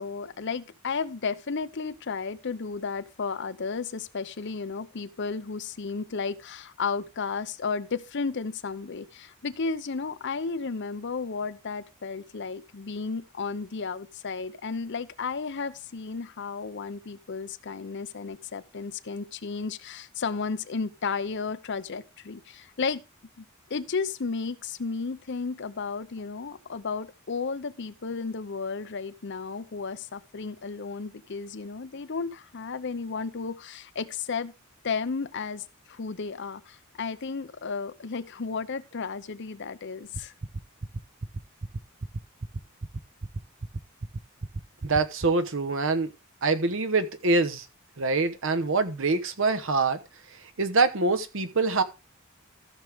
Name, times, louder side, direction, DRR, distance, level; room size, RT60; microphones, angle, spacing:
voice 1, 0.0-23.0 23.4-23.5 23.7-34.5 34.8-40.3, left 4 dB, 55° left, 0.7 m, -33 dB
sound 1, 40.1-45.3, right 2 dB, 45° right, 0.7 m, -33 dB
voice 2, 44.8-46.1 46.4-47.7 48.0-50.0 50.3-51.8, right 3 dB, 65° right, 1.0 m, -25 dB
14.5 x 6.4 x 3.5 m
head